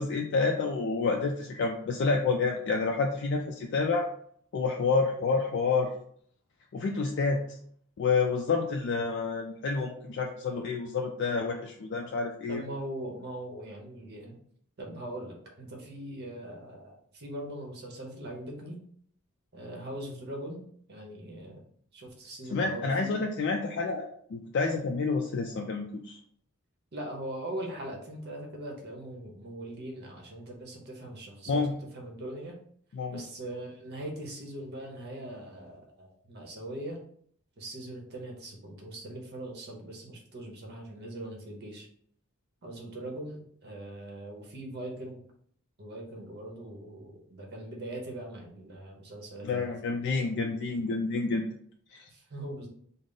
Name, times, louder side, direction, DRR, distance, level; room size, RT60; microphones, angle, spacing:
voice 1, 0.0-4.1 4.5-5.9 6.7-7.4 8.0-12.6 22.5-26.2 31.5-31.8 32.9-33.2 49.4-51.4 51.9-52.1, left 4 dB, 55° left, 2 dB, 0.3 m, -29 dB
voice 2, 12.5-14.4 14.8-18.8 19.5-20.6 20.9-21.6 21.9-23.2 26.9-32.6 33.1-37.0 37.6-41.9 42.6-45.2 45.8-49.8 52.1-52.7, right 1 dB, 50° right, 0 dB, 0.8 m, -41 dB
3.7 x 2.0 x 3.7 m, 0.62 s
head